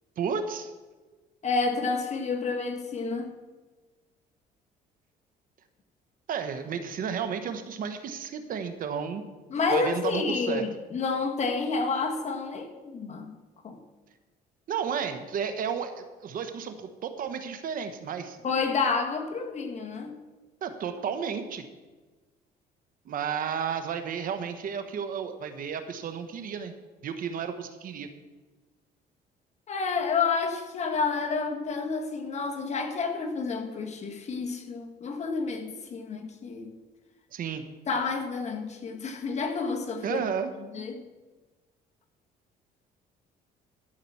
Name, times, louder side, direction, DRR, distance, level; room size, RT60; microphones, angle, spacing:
voice 1, 0.2-0.7 6.3-9.2 9.7-10.6 14.7-18.4 20.6-21.7 23.1-26.7 27.0-28.1 37.3-37.6 40.0-40.5, right 7 dB, 55° right, 9 dB, 1.2 m, -32 dB
voice 2, 1.4-3.3 9.5-13.4 13.6-13.8 18.4-20.1 29.7-36.7 37.9-40.2 40.6-41.0, left 4 dB, 40° left, 4 dB, 1.7 m, -29 dB
13.0 x 5.9 x 7.1 m, 1.2 s
cardioid pair, 110°, 17 cm